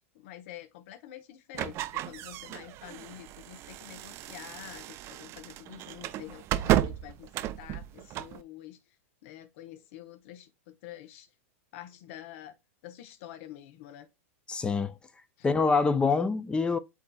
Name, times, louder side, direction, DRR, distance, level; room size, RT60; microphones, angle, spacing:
voice 1, 0.0-8.8 9.2-11.3 11.7-12.5 12.8-14.1 15.4-15.5, left 12 dB, 60° left, 0.9 m, -47 dB
sound 1, 1.5-8.4, right 13 dB, 35° right, 0.4 m, -33 dB
voice 2, 14.5-14.9 15.4-16.8, left 4 dB, 15° left, 0.5 m, -25 dB
8.2 x 2.8 x 2.3 m
hypercardioid pair, 120°, 7 cm